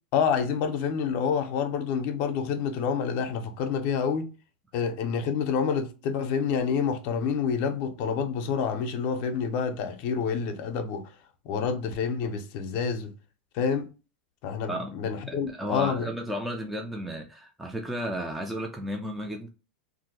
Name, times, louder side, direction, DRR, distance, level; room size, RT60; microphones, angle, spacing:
voice 1, 0.1-4.3 4.7-11.1 11.5-13.1 13.5-13.9 14.4-16.1, left 6 dB, 50° left, 0.5 m, -28 dB
voice 2, 14.7-19.5, equal, ahead, 0.3 m, -34 dB
2.5 x 2.2 x 4.0 m
supercardioid pair, 130°, 5 cm